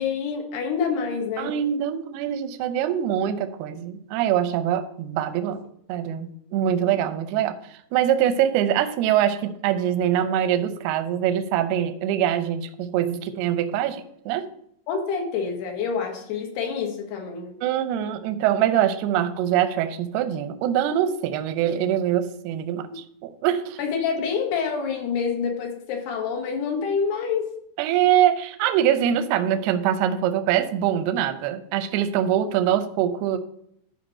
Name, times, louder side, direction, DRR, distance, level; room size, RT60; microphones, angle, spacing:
voice 1, 0.0-1.5 6.8-6.9 14.9-17.6 22.9-23.0 23.8-27.5, left 6 dB, 65° left, 2 dB, 3.2 m, -27 dB
voice 2, 1.4-5.6 5.9-14.5 17.6-23.8 27.8-33.4, right 10 dB, 80° right, 10 dB, 2.4 m, -23 dB
13.5 x 5.1 x 4.3 m, 0.72 s
omnidirectional pair, 5.4 m